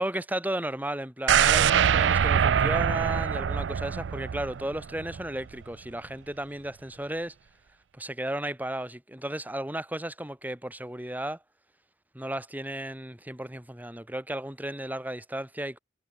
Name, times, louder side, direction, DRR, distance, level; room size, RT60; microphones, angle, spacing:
voice 1, 0.0-7.3 7.9-11.4 12.1-15.8, right 1 dB, 10° right, 3.0 m, -34 dB
sound 1, 1.3-5.3 5.6-5.7, right 8 dB, 90° right, 0.4 m, -24 dB
head